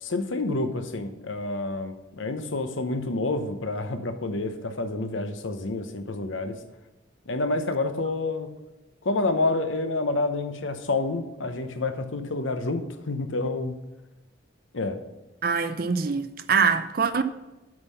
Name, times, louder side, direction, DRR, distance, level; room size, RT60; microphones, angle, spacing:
voice 1, 0.0-6.6 7.3-8.5 9.0-13.8 14.7-15.0, left 2 dB, 75° left, 0.8 m, -28 dB
voice 2, 15.4-17.2, right 5 dB, 50° right, 0.5 m, -24 dB
7.9 x 5.5 x 5.5 m
head